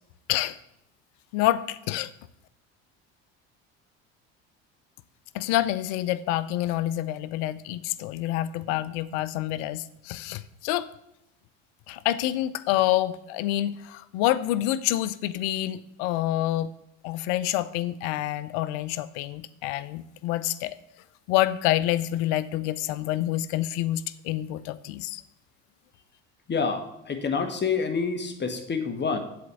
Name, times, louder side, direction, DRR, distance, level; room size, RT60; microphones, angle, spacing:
voice 1, 1.3-2.1 5.3-10.9 11.9-16.7 17.0-20.8 21.3-25.2, left 14 dB, 80° left, 16 dB, 0.6 m, -27 dB
voice 2, 26.5-29.2, left 5 dB, 30° left, 7 dB, 1.3 m, -27 dB
7.7 x 4.3 x 6.8 m, 0.84 s
supercardioid pair, 80°, 35 cm